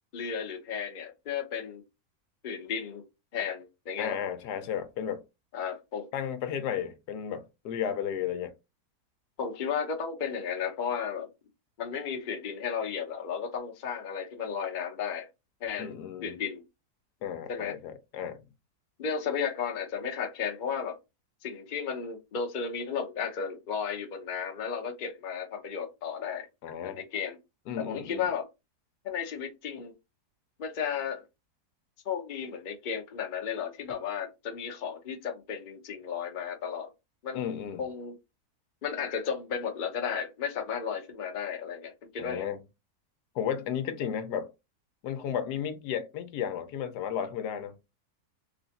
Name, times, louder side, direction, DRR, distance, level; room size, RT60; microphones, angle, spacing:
voice 1, 0.1-1.8 2.4-3.0 3.3-4.2 5.5-6.1 9.4-11.3 11.8-15.3 15.6-16.6 17.5-17.8 19.0-21.0 21.4-26.5 26.8-27.4 27.8-28.5 29.0-29.9 30.6-31.2 32.0-36.9 37.2-37.5 37.8-38.1 38.8-42.5, left 7 dB, 45° left, 0.7 m, -34 dB
voice 2, 4.0-5.2 6.1-8.5 15.8-16.3 17.2-18.4 26.6-27.0 27.7-28.3 37.3-37.8 42.2-42.6 43.3-44.5 45.0-47.8, left 8 dB, 85° left, 1.2 m, -33 dB
3.4 x 2.4 x 4.0 m
omnidirectional pair, 1.7 m